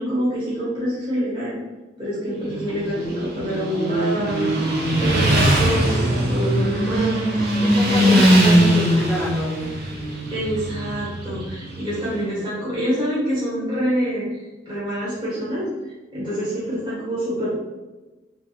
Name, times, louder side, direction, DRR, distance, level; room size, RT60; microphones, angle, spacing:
voice 1, 0.0-1.6 2.0-4.5 4.9-8.2 10.3-17.5, equal, 25° right, -8 dB, 1.1 m, -26 dB
Motorcycle, 2.4-12.2, right 1 dB, 55° right, 0.7 m, -20 dB
voice 2, 7.6-9.6 9.9-10.0 16.7-16.8 17.1-17.2, left 1 dB, 10° left, -2 dB, 0.5 m, -27 dB
3.5 x 2.9 x 2.4 m, 1.2 s
head